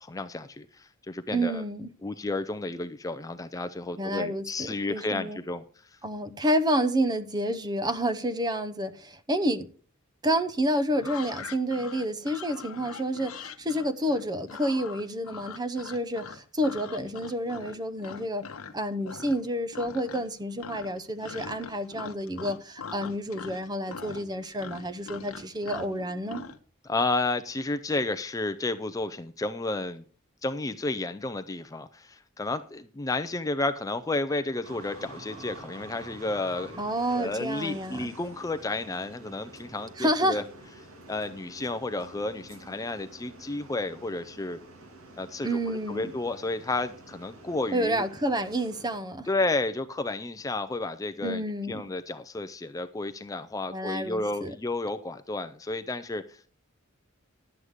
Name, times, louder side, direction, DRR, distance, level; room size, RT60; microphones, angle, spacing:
voice 1, 0.0-1.6 2.0-5.6 26.8-30.0 30.4-36.8 37.1-40.4 41.1-44.6 45.2-48.0 49.3-56.5, left 2 dB, 15° left, 0.4 m, -32 dB
voice 2, 1.3-1.9 4.0-5.4 6.0-9.7 10.2-18.4 18.7-26.4 36.8-38.1 40.0-40.4 45.4-46.1 47.7-49.3 51.2-51.8 53.7-54.5, right 1 dB, 20° right, 0.7 m, -29 dB
sound 1, 10.9-18.8 19.0-19.5 19.7-20.3 20.6-26.6, left 5 dB, 75° left, 0.9 m, -42 dB
sound 2, 34.6-49.0, right 2 dB, 75° right, 2.0 m, -48 dB
11.0 x 8.0 x 4.9 m
head